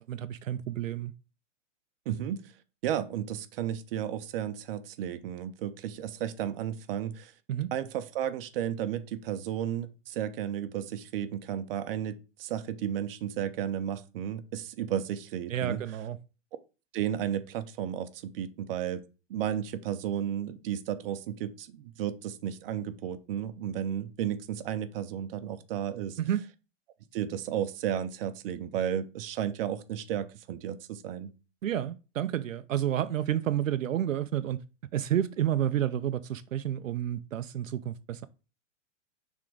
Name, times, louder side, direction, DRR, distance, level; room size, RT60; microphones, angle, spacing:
voice 1, 0.1-1.1 7.5-7.7 15.5-16.2 26.2-26.5 31.6-34.6 34.9-38.3, right 11 dB, 90° right, 0.6 m, -30 dB
voice 2, 2.1-2.5 2.8-7.3 7.7-15.8 16.9-19.0 19.3-26.2 27.1-31.3, right 10 dB, 50° right, 0.8 m, -33 dB
6.0 x 3.7 x 4.9 m
hypercardioid pair, 135°, 38 cm